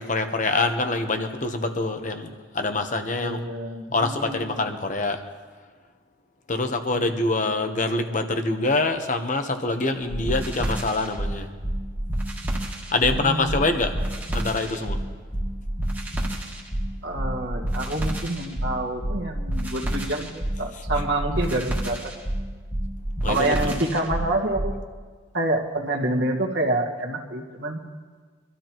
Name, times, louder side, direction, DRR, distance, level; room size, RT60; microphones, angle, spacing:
voice 1, 0.0-2.3 2.5-3.4 3.9-5.2 6.5-11.5 12.9-14.0 14.3-15.0 23.2-23.7, left 2 dB, 40° left, 6 dB, 1.0 m, -25 dB
voice 2, 3.1-4.4 6.9-7.1 13.0-13.5 17.0-22.1 23.3-24.8 25.3-27.8, right 1 dB, 60° right, 0 dB, 1.6 m, -27 dB
sound 1, 10.1-24.8, right 1 dB, 10° right, 1.7 m, -28 dB
25.0 x 13.0 x 3.0 m, 1.5 s
head